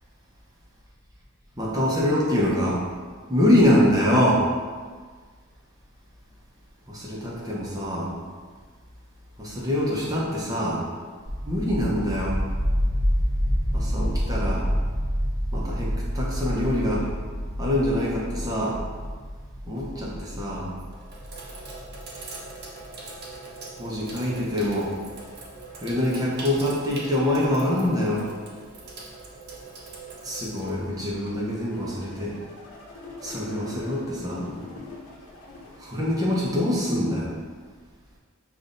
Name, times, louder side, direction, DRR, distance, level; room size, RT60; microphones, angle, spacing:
voice 1, 1.6-2.8 3.3-4.4 6.9-8.1 9.4-10.8 11.4-12.4 13.7-14.6 15.5-17.1 17.6-18.8 19.7-20.7 23.8-24.9 25.8-28.3 30.2-32.3 33.2-34.5 35.8-37.3, left 1 dB, 15° right, -5 dB, 0.9 m, -24 dB
sound 1, 11.3-21.9, equal, 50° left, 1.0 m, -28 dB
Sink (filling or washing), 20.8-31.6, right 3 dB, 50° right, 0.8 m, -42 dB
sound 2, 30.5-35.8, left 2 dB, 85° left, 0.8 m, -43 dB
7.1 x 2.6 x 2.6 m, 1.5 s
head